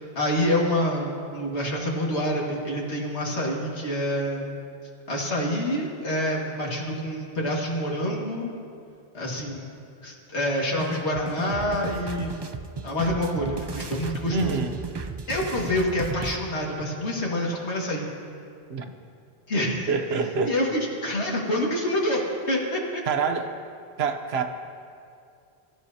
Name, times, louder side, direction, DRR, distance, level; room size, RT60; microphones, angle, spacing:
voice 1, 0.0-4.6 5.1-8.5 9.1-9.7 10.0-12.4 12.8-14.5 15.3-18.1 19.5-19.9 20.5-20.7 21.0-23.0, left 1 dB, 90° left, -3 dB, 2.3 m, -27 dB
sound 1, 10.8-16.4, right 4 dB, 45° right, 0.3 m, -35 dB
voice 2, 14.3-14.8 18.7-18.9 19.9-20.6 23.1-23.5 24.0-24.4, right 5 dB, 70° right, 6 dB, 1.1 m, -26 dB
23.0 x 13.0 x 2.8 m, 2.4 s
omnidirectional pair, 1.1 m